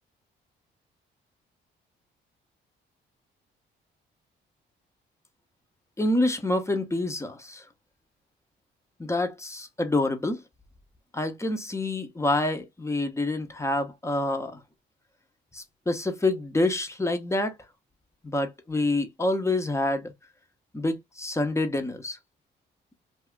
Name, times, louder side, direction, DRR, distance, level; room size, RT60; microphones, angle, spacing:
voice 1, 6.0-7.6 9.0-10.4 11.1-14.6 15.5-17.5 18.2-20.1 20.7-22.2, left 2 dB, 15° left, 0.7 m, -27 dB
2.7 x 2.4 x 3.3 m
cardioid pair, 90°, 20 cm